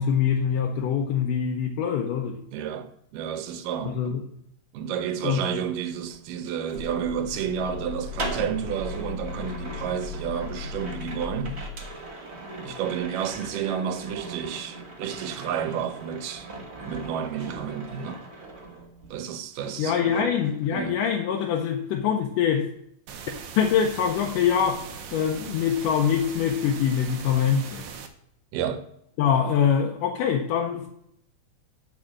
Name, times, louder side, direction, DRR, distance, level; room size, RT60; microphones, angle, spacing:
voice 1, 0.0-2.4 3.9-4.3 5.2-5.4 19.8-22.7 23.6-24.8 25.1-27.8 29.2-30.9, left 8 dB, 85° left, 2.3 m, -24 dB
voice 2, 2.5-4.2 4.7-11.6 12.6-16.5 16.9-18.2 19.1-20.3 20.7-21.0 28.5-28.8, right 8 dB, 85° right, 2.4 m, -31 dB
sound 1, 5.8-19.3 19.6-21.1 21.3-21.7, right 3 dB, 50° right, 0.7 m, -40 dB
sound 2, 6.7-12.0, left 5 dB, 20° right, 0.4 m, -37 dB
sound 3, 23.1-28.1, right 6 dB, 70° right, 1.9 m, -40 dB
9.9 x 4.9 x 7.4 m
omnidirectional pair, 3.7 m